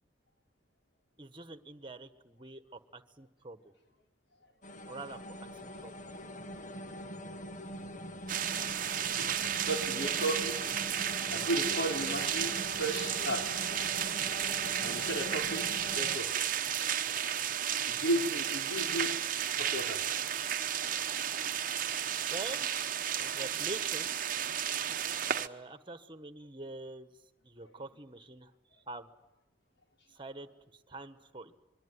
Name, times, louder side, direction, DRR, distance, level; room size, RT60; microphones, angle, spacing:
voice 1, 1.2-3.7 4.9-5.9 22.3-22.7 23.1-24.1 25.2-27.1 27.4-28.5 28.9-29.1 30.1-31.5, right 2 dB, 25° right, 11 dB, 1.5 m, -45 dB
sound 1, 4.6-16.2, equal, 45° left, 1.4 m, -43 dB
sound 2, 8.3-25.5, right 9 dB, 45° right, 0.9 m, -33 dB
voice 2, 8.9-11.0 11.3-13.5 14.8-15.7 16.0-16.3 17.1-17.2 17.9-19.1 19.6-20.0 27.6-27.7, right 1 dB, 70° left, 3 dB, 4.8 m, -35 dB
25.5 x 22.5 x 9.8 m, 0.94 s
head